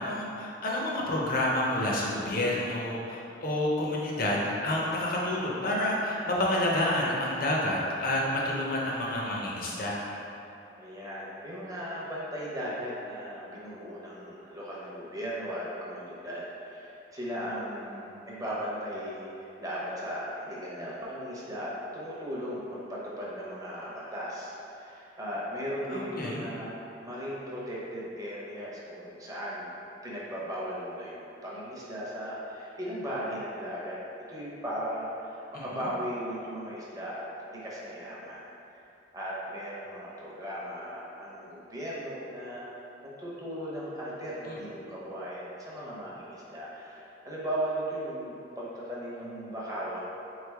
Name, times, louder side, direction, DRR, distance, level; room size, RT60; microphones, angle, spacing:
voice 1, 0.0-10.2 25.9-26.4 35.5-35.7 44.5-44.6, left 1 dB, 50° left, -4 dB, 0.7 m, -29 dB
voice 2, 10.8-29.7 30.0-34.0 34.3-38.4 39.1-42.7 43.0-50.0, equal, 20° right, -6 dB, 0.7 m, -37 dB
3.7 x 3.2 x 3.5 m, 2.9 s
head